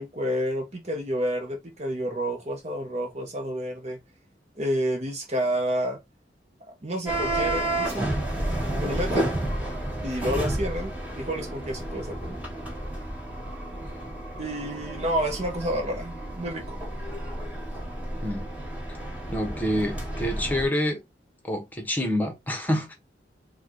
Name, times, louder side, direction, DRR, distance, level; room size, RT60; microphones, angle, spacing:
voice 1, 0.0-4.0 4.6-6.0 6.8-8.1 8.8-9.3 10.0-12.4 14.4-16.8, equal, 35° right, 0.9 m, -29 dB
sound 1, 7.1-20.6, right 1 dB, 10° right, 1.6 m, -31 dB
voice 2, 19.3-21.0 21.4-22.9, equal, 10° left, 1.1 m, -27 dB
4.7 x 2.4 x 3.7 m
head